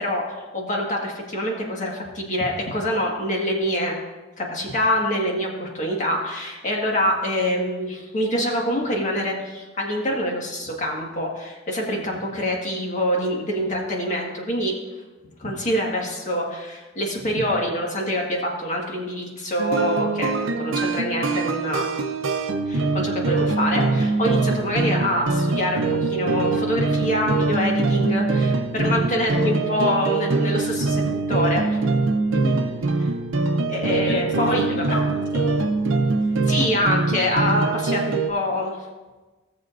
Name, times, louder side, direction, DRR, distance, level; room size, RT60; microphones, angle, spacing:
voice 1, 0.0-4.0 4.4-14.8 15.4-21.9 22.7-31.0 31.3-31.8 33.7-34.9 36.5-38.8, equal, 40° left, -1 dB, 1.7 m, -25 dB
sound 1, 19.6-38.3, right 3 dB, 75° right, 0.7 m, -23 dB
voice 2, 32.3-32.8 34.1-35.6, left 2 dB, 65° left, 4 dB, 1.2 m, -31 dB
17.0 x 7.0 x 2.6 m, 1.2 s
head